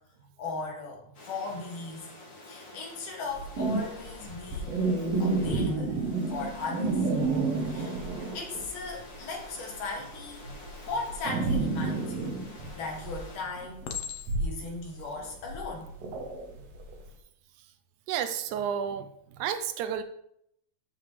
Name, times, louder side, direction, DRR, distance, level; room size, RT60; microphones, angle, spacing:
voice 1, 0.4-2.1 2.5-4.9 5.2-6.1 6.3-7.1 7.7-8.0 8.3-10.5 10.9-12.4 12.7-13.9 14.4-15.9, left 3 dB, 85° left, -1 dB, 3.6 m, -37 dB
sound 1, 1.1-13.4, left 2 dB, 45° left, 2.9 m, -49 dB
sound 2, 3.3-8.9 9.2-17.0, right 3 dB, 60° right, 2.0 m, -30 dB
Chink clink, 12.4-12.9 13.8-14.6 15.4-15.7, left 8 dB, 65° left, 1.7 m, -39 dB
voice 2, 18.1-20.0, right 8 dB, 80° right, 9 dB, 2.0 m, -31 dB
13.5 x 5.9 x 3.2 m, 0.73 s
omnidirectional pair, 3.7 m